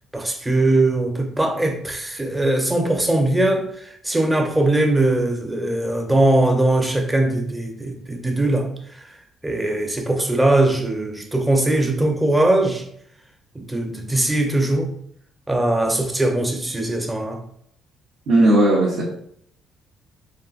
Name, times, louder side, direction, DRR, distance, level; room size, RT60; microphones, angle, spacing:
voice 1, 0.1-9.2 9.4-12.9 13.5-14.9 15.5-17.4, right 1 dB, 10° right, 0.5 m, -20 dB
voice 2, 18.3-19.0, right 1 dB, 65° right, 0.8 m, -16 dB
3.7 x 2.5 x 2.3 m
cardioid pair, 105°, 0 cm